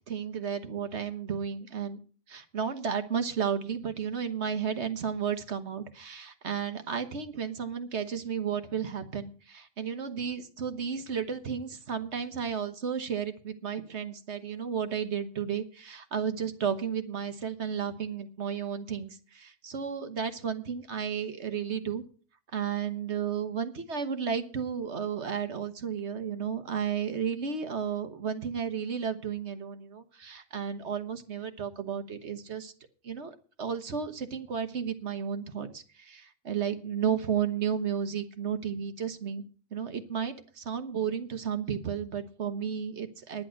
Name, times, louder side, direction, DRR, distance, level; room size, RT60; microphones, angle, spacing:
voice 1, 0.1-2.0 2.3-22.0 22.5-32.7 33.0-39.4 39.7-43.4, right 7 dB, 65° right, 8 dB, 1.5 m, -33 dB
10.5 x 10.5 x 6.4 m, 0.40 s
omnidirectional pair, 1.3 m